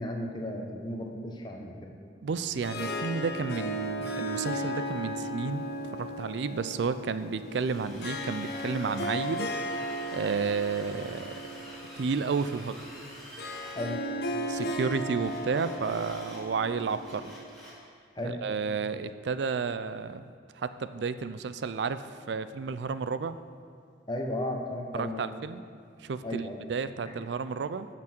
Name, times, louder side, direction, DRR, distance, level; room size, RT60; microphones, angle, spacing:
voice 1, 0.0-1.9 13.7-14.0 18.2-18.4 24.1-25.3 26.2-26.6 27.1-27.2, left 1 dB, 25° left, 1 dB, 0.9 m, -34 dB
voice 2, 2.2-5.7 5.9-9.6 10.1-11.3 11.9-12.9 14.5-17.2 18.2-23.4 24.9-25.6 26.0-26.4 26.7-27.9, right 5 dB, 75° right, 12 dB, 0.4 m, -32 dB
Harp, 2.3-17.6, equal, 60° left, 0.8 m, -36 dB
Drill, 7.4-13.8 15.2-16.4 16.8-17.8, left 1 dB, ahead, 2.1 m, -48 dB
12.5 x 6.0 x 4.4 m, 2.2 s
head